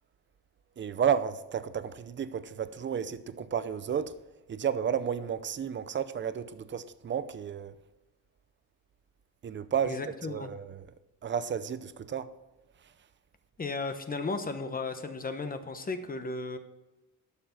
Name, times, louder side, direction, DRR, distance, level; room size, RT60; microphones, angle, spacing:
voice 1, 0.8-4.2 4.5-7.8 9.4-10.9 11.2-12.3, right 8 dB, 30° right, 0.6 m, -32 dB
voice 2, 9.9-10.5 13.6-16.6, left 3 dB, 25° left, 1.0 m, -35 dB
11.5 x 7.1 x 5.8 m
cardioid pair, 130°, 36 cm